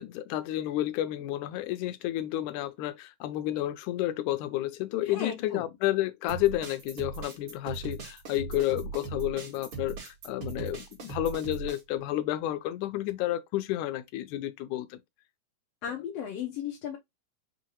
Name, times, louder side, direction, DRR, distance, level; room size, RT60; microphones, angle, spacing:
voice 1, 0.0-15.0, left 14 dB, 90° left, 2.1 m, -31 dB
voice 2, 5.0-5.6 15.8-17.0, left 8 dB, 70° left, 1.7 m, -35 dB
sound 1, 6.3-11.8, right 5 dB, 50° right, 2.3 m, -39 dB
5.6 x 2.7 x 3.0 m
omnidirectional pair, 3.4 m